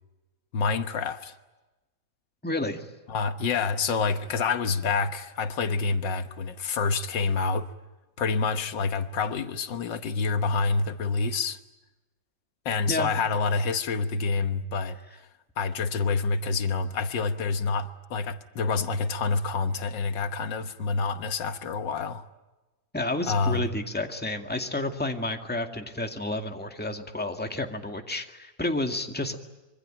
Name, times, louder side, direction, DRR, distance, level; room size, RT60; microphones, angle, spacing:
voice 1, 0.5-1.4 3.1-7.7 8.2-11.6 12.7-15.0 15.6-22.2 23.3-23.7, left 4 dB, 75° left, 1.8 m, -27 dB
voice 2, 2.4-2.9 12.9-13.1 22.9-29.3, left 2 dB, 5° left, 2.0 m, -30 dB
26.0 x 24.5 x 9.0 m
omnidirectional pair, 2.0 m